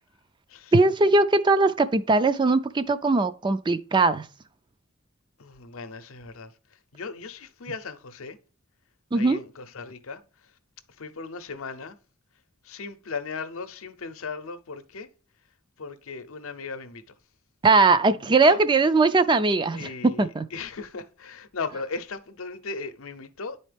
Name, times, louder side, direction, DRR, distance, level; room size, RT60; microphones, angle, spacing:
voice 1, 0.7-4.3 9.1-9.4 17.6-19.9 20.2-20.5, right 3 dB, 20° right, 0.4 m, -20 dB
voice 2, 5.4-8.4 9.1-10.5 11.0-12.0 12.6-15.1 15.8-17.0 18.0-18.6 19.7-23.6, left 4 dB, 80° left, 0.7 m, -37 dB
9.9 x 4.2 x 3.4 m
head